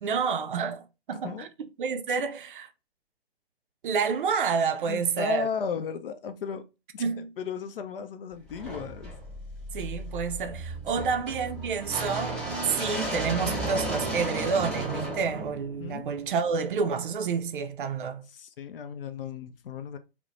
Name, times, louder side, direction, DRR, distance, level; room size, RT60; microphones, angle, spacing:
voice 1, 0.0-1.5 1.8-2.7 3.8-5.5 7.0-7.3 9.7-18.2, right 6 dB, 55° right, 0.4 m, -29 dB
voice 2, 4.8-6.6 6.9-7.0 7.4-9.1 11.0-11.2 12.8-13.2 15.8-16.1 18.3-20.0, left 6 dB, 65° left, 0.5 m, -35 dB
sound 1, 8.5-16.5, right 1 dB, ahead, 0.8 m, -34 dB
2.4 x 2.1 x 3.0 m
hypercardioid pair, 140°, 31 cm